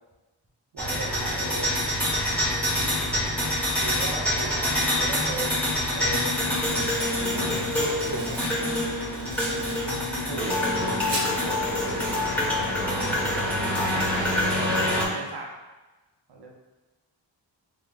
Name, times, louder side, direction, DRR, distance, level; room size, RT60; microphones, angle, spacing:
voice 1, 0.7-1.7 3.8-5.6 5.9-6.4 10.1-12.2 13.8-14.6 14.9-15.5 16.3-16.5, right 2 dB, 65° right, 0 dB, 0.8 m, -37 dB
sound 1, 0.8-15.0, left 1 dB, 5° left, 1.2 m, -26 dB
voice 2, 4.2-4.9 7.2-8.9 13.0-13.4 14.4-14.7, equal, 15° right, -7 dB, 1.0 m, -37 dB
Domestic sounds home sounds, 5.9-12.3, right 1 dB, 85° right, 1.4 m, -39 dB
5.9 x 2.4 x 2.3 m, 1.1 s
cardioid pair, 50°, 44 cm